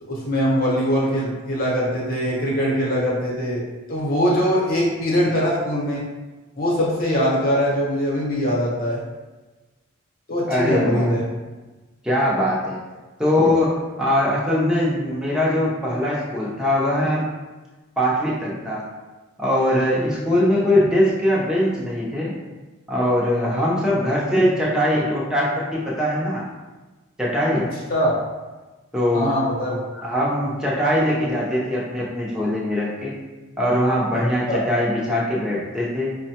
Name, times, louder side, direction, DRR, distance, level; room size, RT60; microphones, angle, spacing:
voice 1, 0.0-3.6 3.9-6.0 6.6-9.0 10.3-11.2 27.9-28.2 29.1-30.0 34.5-34.6, equal, 45° left, -5 dB, 1.0 m, -22 dB
voice 2, 10.5-11.1 12.0-12.8 13.2-17.3 18.0-18.9 19.4-22.3 22.9-26.4 27.2-27.7 28.9-29.3 30.0-33.2 33.6-36.2, left 1 dB, 5° right, -6 dB, 0.7 m, -21 dB
5.3 x 2.2 x 2.8 m, 1.2 s
head